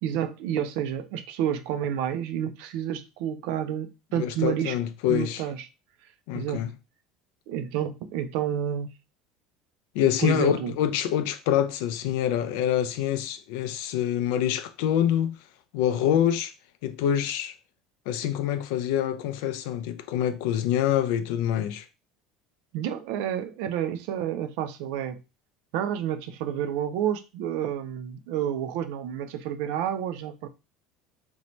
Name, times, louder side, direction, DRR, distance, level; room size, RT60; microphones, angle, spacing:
voice 1, 0.0-4.8 5.1-5.7 6.3-6.6 7.5-8.9 10.2-10.7 22.7-25.2 25.7-30.5, right 10 dB, 65° right, 0.4 m, -29 dB
voice 2, 4.1-5.4 6.3-6.7 9.9-15.4 15.7-16.5 16.8-17.5 18.1-21.9, left 10 dB, 75° left, 0.4 m, -26 dB
2.6 x 2.1 x 3.0 m
cardioid pair, 165°, 0 cm